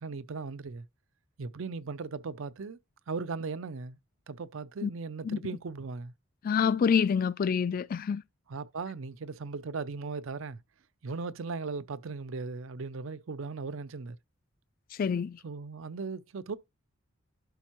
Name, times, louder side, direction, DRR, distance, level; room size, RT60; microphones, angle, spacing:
voice 1, 0.0-0.9 1.4-2.8 3.1-4.0 4.3-6.1 8.5-10.6 11.0-14.2 15.4-16.6, right 4 dB, 70° right, 0.5 m, -37 dB
voice 2, 6.4-8.2 14.9-15.4, left 6 dB, 45° left, 0.3 m, -27 dB
11.5 x 4.4 x 3.0 m
head